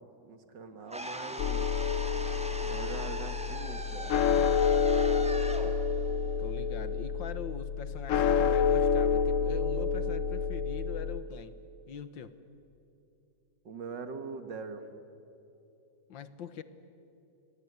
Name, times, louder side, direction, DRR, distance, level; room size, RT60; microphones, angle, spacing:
voice 1, 0.0-1.7 2.7-4.2 13.6-14.9, right 4 dB, 65° right, 9 dB, 2.4 m, -42 dB
sound 1, 0.9-7.0, equal, 5° right, 1.9 m, -41 dB
sound 2, 1.4-11.2, left 6 dB, 60° left, 0.8 m, -28 dB
voice 2, 6.4-11.6 11.9-12.4 16.1-16.6, left 7 dB, 80° left, 13 dB, 1.9 m, -43 dB
28.5 x 20.5 x 9.7 m, 2.9 s
omnidirectional pair, 2.1 m